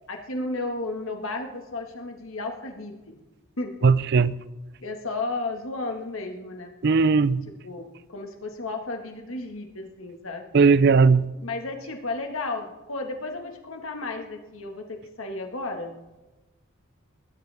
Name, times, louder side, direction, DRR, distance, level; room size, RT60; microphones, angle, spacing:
voice 1, 0.1-3.2 3.6-3.9 4.8-6.7 7.6-10.5 11.4-16.0, left 2 dB, 90° left, 1.8 m, -33 dB
voice 2, 3.8-4.3 6.8-7.4 10.5-11.3, right 4 dB, 55° right, 0.4 m, -18 dB
19.5 x 10.5 x 3.5 m
head